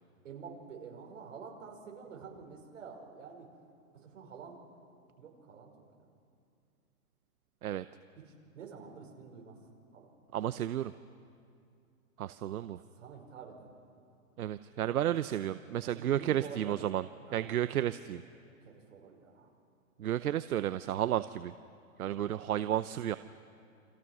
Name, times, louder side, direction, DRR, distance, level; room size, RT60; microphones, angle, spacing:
voice 1, 0.2-3.5 3.9-4.6 5.2-5.8 8.2-9.6 9.9-10.1 12.9-13.7 15.8-16.8 17.3-17.6 18.4-19.5, right 6 dB, 60° right, 0 dB, 5.8 m, -48 dB
voice 2, 10.3-10.9 12.2-12.8 14.4-17.0 17.3-18.2 20.0-21.5 22.0-23.2, right 11 dB, 80° right, 13 dB, 0.8 m, -32 dB
29.0 x 25.5 x 6.2 m, 2.4 s
hypercardioid pair, 175°, 43 cm